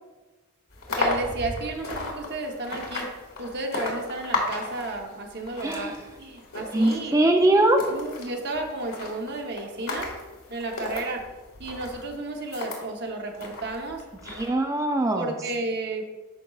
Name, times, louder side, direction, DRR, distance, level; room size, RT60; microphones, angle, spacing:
sound 1, 0.7-12.8 13.3-14.5, left 2 dB, 75° left, 1.8 m, -35 dB
voice 1, 0.9-3.1 3.4-7.2 7.9-10.1 10.5-11.3 11.6-14.0 15.1-16.1, right 2 dB, 50° right, 3 dB, 0.9 m, -33 dB
voice 2, 5.6-6.0 6.7-7.8 14.3-15.4, right 1 dB, 15° right, 4 dB, 0.4 m, -21 dB
12.0 x 5.1 x 2.4 m, 1.2 s
head